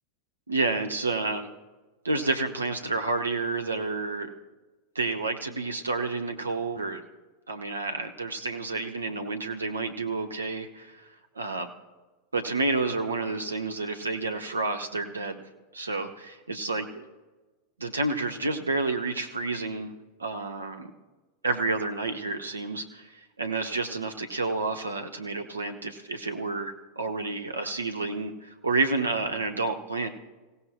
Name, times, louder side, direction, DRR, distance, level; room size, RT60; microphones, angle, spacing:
voice 1, 0.5-1.5 2.0-4.3 4.9-7.0 7.5-11.1 11.3-11.7 12.3-15.4 15.7-17.0 17.8-19.9 20.2-20.9 21.4-30.1, right 3 dB, 75° right, 6 dB, 1.0 m, -30 dB
26.5 x 16.5 x 2.3 m, 1.2 s
figure-of-eight pair, 90°, 0 cm